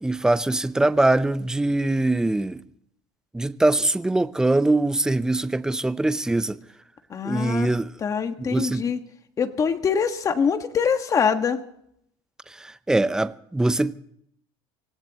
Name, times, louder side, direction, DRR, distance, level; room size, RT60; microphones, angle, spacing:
voice 1, 0.0-2.6 3.3-6.6 7.2-7.9 8.5-8.8 12.6-13.9, right 2 dB, 5° right, 0.7 m, -22 dB
voice 2, 7.1-7.7 8.0-9.0 9.4-11.6, left 6 dB, 30° left, 1.6 m, -24 dB
25.0 x 18.0 x 3.0 m
cardioid pair, 130°, 11 cm